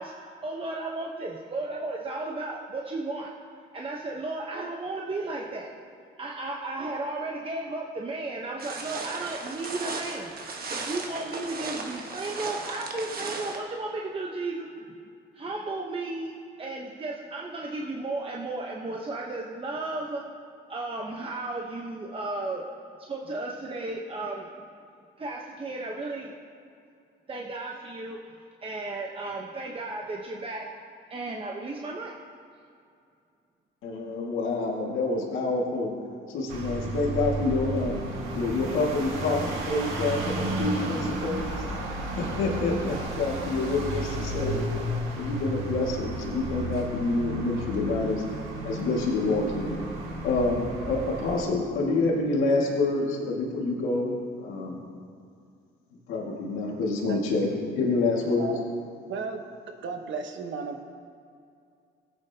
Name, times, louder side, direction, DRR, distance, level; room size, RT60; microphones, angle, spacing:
voice 1, 0.0-3.3 3.7-5.7 6.2-10.3 10.7-14.9 15.3-20.2 20.7-22.6 23.1-24.5 25.2-26.3 27.3-28.2 28.6-30.7 31.1-32.1, right 2 dB, 25° right, -1 dB, 1.0 m, -34 dB
sound 1, 8.6-13.6, right 3 dB, 50° right, 1.3 m, -36 dB
voice 2, 33.8-35.9 36.3-38.0 38.3-41.7 42.2-44.7 45.1-48.2 48.6-49.8 50.2-54.9 56.1-58.5, left 3 dB, 85° left, -3 dB, 2.0 m, -27 dB
sound 2, 36.5-51.4, right 2 dB, 90° right, 1.6 m, -33 dB
voice 3, 58.2-58.6 59.1-59.4 59.8-60.8, right 5 dB, 70° right, 4 dB, 1.2 m, -34 dB
17.5 x 8.9 x 2.9 m, 2.3 s
cardioid pair, 90°, 20 cm